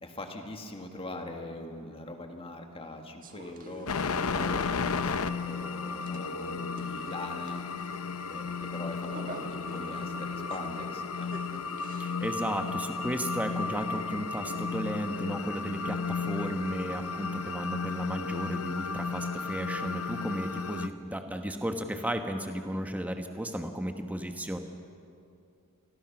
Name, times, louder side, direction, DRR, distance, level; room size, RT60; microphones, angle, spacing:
voice 1, 0.0-3.9 4.3-7.6 8.3-11.3 20.4-20.7, left 1 dB, 25° left, 4 dB, 1.9 m, -42 dB
sound 1, 3.2-12.3, right 2 dB, 40° right, 1.5 m, -49 dB
sound 2, 3.9-20.9, left 5 dB, 75° left, 0.8 m, -34 dB
voice 2, 12.0-24.6, equal, 5° right, 5 dB, 1.2 m, -34 dB
28.0 x 19.5 x 6.1 m, 2.5 s
head